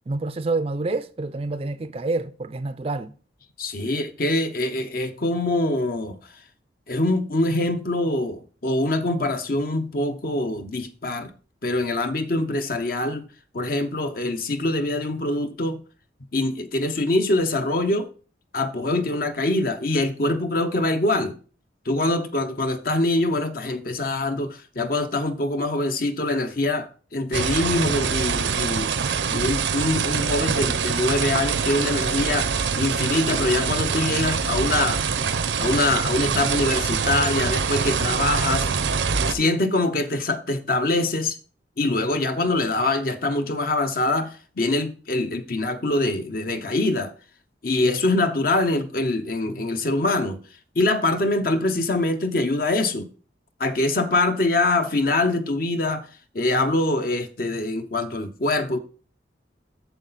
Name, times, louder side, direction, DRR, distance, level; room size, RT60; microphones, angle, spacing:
voice 1, 0.1-3.1, right 3 dB, 30° right, 0.4 m, -27 dB
voice 2, 3.6-6.2 6.9-11.3 11.6-13.3 13.5-15.8 16.3-18.1 18.5-21.4 21.9-28.9 29.3-35.0 35.6-38.7 39.3-41.4 41.8-47.1 47.6-50.4 50.8-53.1 53.6-56.1 56.3-58.8, left 2 dB, 50° left, 0.8 m, -24 dB
sound 1, 27.3-39.3, right 6 dB, 85° right, 0.7 m, -24 dB
8.0 x 6.7 x 4.0 m
head